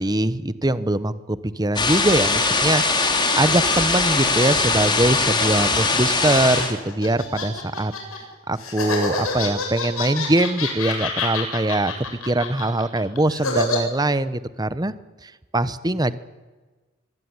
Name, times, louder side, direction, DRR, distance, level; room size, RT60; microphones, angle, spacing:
voice 1, 0.0-2.8 3.4-7.9 8.5-11.9 12.2-14.9 15.2-16.1, right 1 dB, 20° right, 14 dB, 1.1 m, -22 dB
sound 1, 1.8-6.7, left 3 dB, 20° left, 3.7 m, -21 dB
sound 2, 2.8-8.2 8.6-13.8, left 3 dB, 80° left, 7.8 m, -29 dB
24.5 x 23.5 x 9.8 m, 1.3 s
head